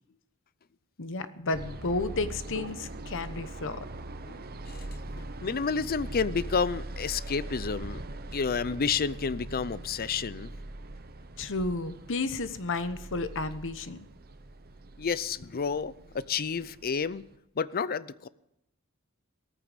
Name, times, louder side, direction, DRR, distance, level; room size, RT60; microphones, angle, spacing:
voice 1, 1.0-3.8 11.4-14.0, left 3 dB, 60° left, 1.0 m, -32 dB
sound 1, 1.5-17.4, right 2 dB, 45° right, 0.9 m, -42 dB
voice 2, 5.4-8.0 8.3-10.5 15.0-17.2 17.6-18.3, left 5 dB, 45° left, 0.5 m, -30 dB
17.0 x 14.0 x 5.1 m
head